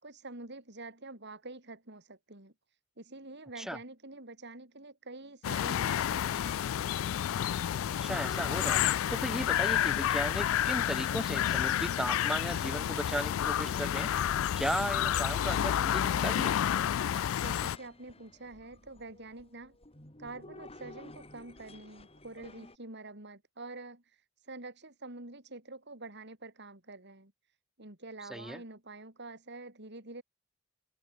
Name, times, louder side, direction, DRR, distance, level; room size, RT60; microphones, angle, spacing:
voice 1, 0.0-2.5 3.0-6.6 17.3-19.8 20.2-24.0 24.5-27.3 27.8-30.2, right 2 dB, 55° right, 5.7 m, -47 dB
sound 1, 5.4-17.8, left 10 dB, 80° left, 0.3 m, -30 dB
sound 2, 6.0-22.8, left 2 dB, 30° left, 4.8 m, -53 dB
voice 2, 8.0-8.8 9.1-14.1 14.6-16.5 28.2-28.6, equal, ahead, 1.3 m, -36 dB
open air
head